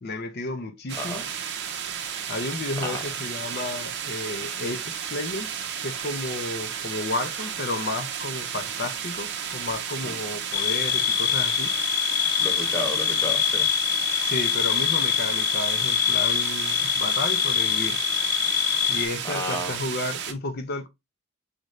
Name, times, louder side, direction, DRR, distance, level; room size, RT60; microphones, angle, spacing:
voice 1, 0.0-1.2 2.3-11.7 14.2-18.0 18.9-20.9, left 2 dB, 45° left, 0.6 m, -32 dB
voice 2, 0.9-1.2 2.8-3.0 10.0-10.1 12.4-13.7 19.2-19.8, left 1 dB, 10° left, 1.1 m, -32 dB
sound 1, 0.9-20.3, right 8 dB, 50° right, 0.6 m, -33 dB
sound 2, 10.5-19.1, left 11 dB, 80° left, 1.1 m, -24 dB
6.4 x 2.6 x 3.1 m
head